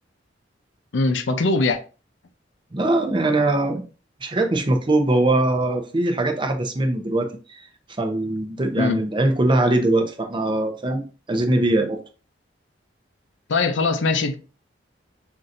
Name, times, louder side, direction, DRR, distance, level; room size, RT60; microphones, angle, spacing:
voice 1, 0.9-1.8 8.8-9.0 13.5-14.4, left 3 dB, 75° left, 0.5 m, -21 dB
voice 2, 2.7-3.8 4.2-7.7 8.0-12.0, right 2 dB, 25° right, 0.6 m, -21 dB
5.5 x 2.6 x 2.5 m
head